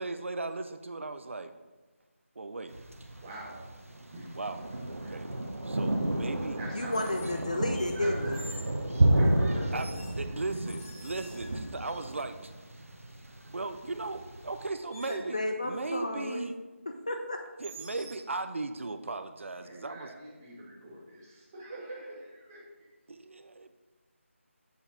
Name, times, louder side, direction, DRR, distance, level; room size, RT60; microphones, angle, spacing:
voice 1, 0.0-1.5 2.4-2.8 4.3-4.6 4.9-5.3 5.6-6.6 9.7-9.9 10.2-12.5 13.5-16.6 17.6-20.1 23.1-23.7, right 3 dB, 65° right, 9 dB, 0.4 m, -37 dB
sound 1, 2.6-2.9 4.7-5.0 6.9-7.4 7.7-8.8 9.7-11.8 14.0-14.1 14.5-15.4 17.6-18.3, equal, 75° left, 2.0 m, -49 dB
Thunder, 2.7-14.6, right 1 dB, 80° right, 0.9 m, -31 dB
voice 2, 3.2-3.5 4.1-4.3 5.0-5.2 6.6-7.1 7.9-8.4 9.1-9.6 10.3-10.4 19.6-22.6, right 1 dB, 15° right, -6 dB, 1.0 m, -43 dB
voice 3, 6.7-8.4 15.1-16.5 17.1-17.4, left 1 dB, 30° left, 4 dB, 0.3 m, -32 dB
6.9 x 4.2 x 3.7 m, 1.2 s
figure-of-eight pair, 175°, 7 cm